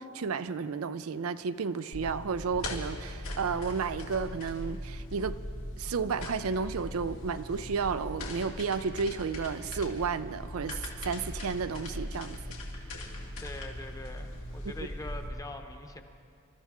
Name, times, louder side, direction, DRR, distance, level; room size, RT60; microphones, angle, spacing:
voice 1, 0.0-5.4 5.8-12.4, right 5 dB, 80° right, 12 dB, 0.5 m, -32 dB
sound 1, 1.9-15.3, left 1 dB, 85° left, 2.3 m, -40 dB
voice 2, 13.4-16.0, left 2 dB, 15° left, 6 dB, 0.9 m, -43 dB
27.0 x 13.5 x 3.7 m, 2.4 s
head